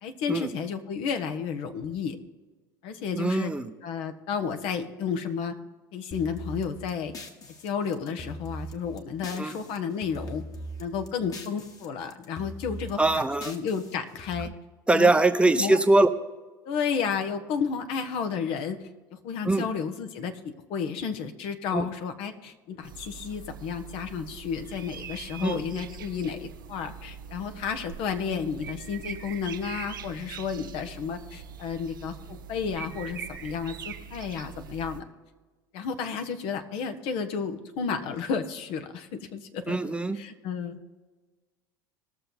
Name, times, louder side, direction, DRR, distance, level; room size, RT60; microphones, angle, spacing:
voice 1, 0.0-2.2 2.8-3.5 3.8-5.5 5.9-7.1 7.6-10.4 10.8-14.5 14.9-15.1 15.5-15.8 16.6-35.0 35.7-39.8 40.1-40.8, left 6 dB, 60° left, 8 dB, 1.2 m, -32 dB
voice 2, 3.2-3.6 9.4-9.5 13.0-13.5 14.9-16.1 19.5-19.7 21.7-21.8 25.4-25.6 39.7-40.2, right 2 dB, 10° right, 9 dB, 0.8 m, -22 dB
sound 1, 6.1-9.8 10.0-11.9 12.1-14.4, right 1 dB, 35° left, 1.6 m, -41 dB
sound 2, 22.8-35.0, right 7 dB, 85° right, 0.9 m, -42 dB
19.5 x 6.8 x 4.0 m, 1.3 s
hypercardioid pair, 75°, 11 cm